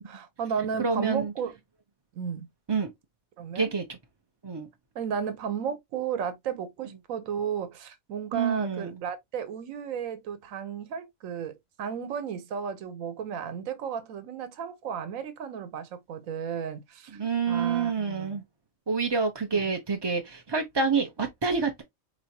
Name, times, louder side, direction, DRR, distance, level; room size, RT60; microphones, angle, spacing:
voice 1, 0.0-1.6 2.1-2.5 3.4-3.7 4.9-17.2 17.5-18.4 19.5-19.6, right 7 dB, 70° right, 1.2 m, -34 dB
voice 2, 0.8-1.3 2.7-2.9 3.5-3.8 4.4-4.7 8.3-8.9 17.1-18.4 18.9-21.8, right 5 dB, 30° right, 0.4 m, -27 dB
4.6 x 2.9 x 2.7 m
omnidirectional pair, 1.5 m